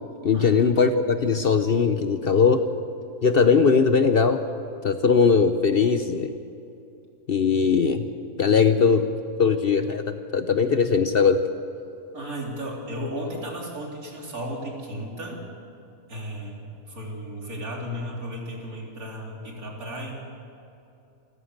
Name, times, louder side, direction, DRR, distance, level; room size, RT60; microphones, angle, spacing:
voice 1, 0.2-2.6 3.2-4.4 4.8-6.3 7.3-8.1 8.4-9.1 9.4-11.4, left 5 dB, 50° left, 9 dB, 0.9 m, -20 dB
voice 2, 12.1-15.5 16.1-20.1, equal, 75° right, -1 dB, 3.9 m, -34 dB
28.0 x 14.5 x 6.6 m, 2.7 s
omnidirectional pair, 1.5 m